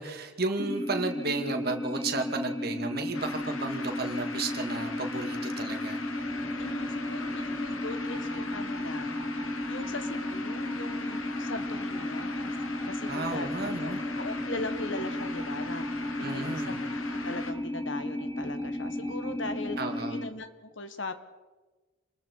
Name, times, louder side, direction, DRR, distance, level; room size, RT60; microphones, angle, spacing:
voice 1, 0.0-6.0 13.1-14.0 16.2-16.8 19.8-20.2, right 3 dB, 45° right, 5 dB, 2.4 m, -33 dB
sound 1, 0.6-20.3, left 1 dB, 15° left, 1.2 m, -34 dB
sound 2, 3.1-17.5, left 4 dB, 80° left, 1.9 m, -41 dB
sound 3, 6.1-19.9, right 2 dB, 25° right, 5.9 m, -49 dB
voice 2, 6.6-9.2 9.4-12.6 12.9-16.6 17.1-19.8 20.1-21.1, left 2 dB, 65° left, 9 dB, 1.7 m, -40 dB
28.0 x 21.0 x 4.8 m, 1.2 s
head